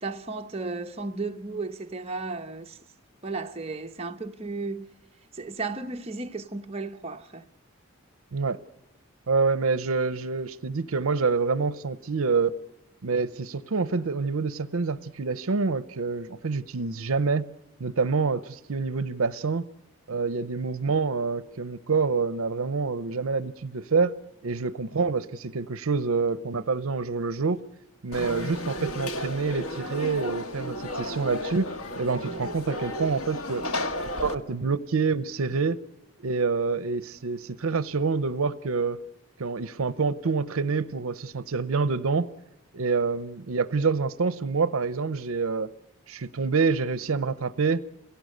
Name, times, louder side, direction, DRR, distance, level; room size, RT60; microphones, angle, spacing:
voice 1, 0.0-2.8 3.2-4.9 5.3-7.5, right 3 dB, 25° right, 1.0 m, -34 dB
voice 2, 9.3-12.5 13.0-17.5 17.8-19.7 20.1-24.1 24.4-27.6 28.0-31.7 32.0-33.6 34.2-35.8 36.2-39.0 39.4-42.3 42.7-45.7 46.1-47.8, right 4 dB, 75° right, 0.7 m, -27 dB
Conversation / Crowd, 28.1-34.4, left 1 dB, 90° left, 1.7 m, -33 dB
28.5 x 17.5 x 6.6 m
head